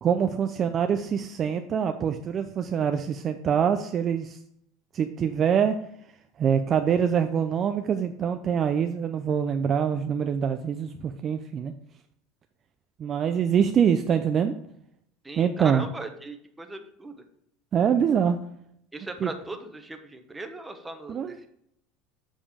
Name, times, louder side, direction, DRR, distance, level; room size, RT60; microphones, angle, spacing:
voice 1, 0.0-4.4 4.9-5.8 6.4-11.7 13.0-14.5 15.4-15.9 17.7-18.4 19.2-19.3 21.1-21.4, right 7 dB, 35° right, 7 dB, 0.4 m, -24 dB
voice 2, 15.2-17.2 18.9-21.5, right 2 dB, 10° right, 6 dB, 0.9 m, -38 dB
7.4 x 5.0 x 3.5 m, 0.72 s
supercardioid pair, 115°, 0 cm